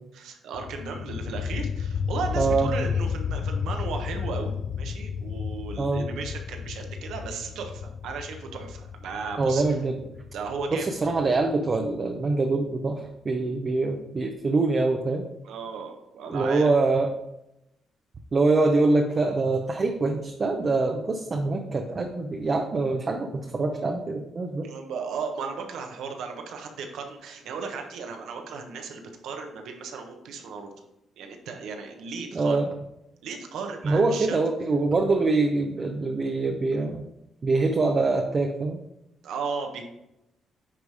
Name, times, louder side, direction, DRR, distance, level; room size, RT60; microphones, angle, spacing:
voice 1, 0.1-9.8 10.3-10.9 15.4-16.7 24.6-30.7 31.2-32.6 33.2-34.4 39.2-39.8, right 5 dB, 80° right, 4 dB, 1.2 m, -35 dB
sound 1, 0.5-12.1, left 6 dB, 60° left, 0.3 m, -32 dB
voice 2, 2.4-2.7 5.8-6.0 9.4-10.0 10.7-15.2 16.3-17.1 18.3-24.7 32.3-32.7 33.8-37.0 37.4-38.8, right 3 dB, 35° right, 3 dB, 0.7 m, -24 dB
9.8 x 3.3 x 4.8 m, 0.86 s
cardioid pair, 90°, 0 cm